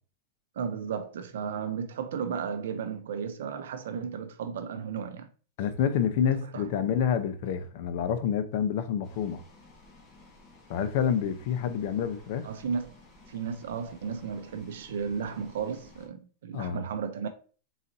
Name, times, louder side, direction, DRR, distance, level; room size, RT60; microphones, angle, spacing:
voice 1, 0.6-5.3 6.2-6.7 12.4-12.9 13.3-17.3, right 6 dB, 85° right, 0.5 m, -34 dB
voice 2, 5.6-9.4 10.7-12.5 16.5-16.8, left 8 dB, 50° left, 0.6 m, -28 dB
sound 1, 9.0-16.1, left 2 dB, 20° left, 1.3 m, -55 dB
4.1 x 3.9 x 2.6 m
supercardioid pair, 165°, 0 cm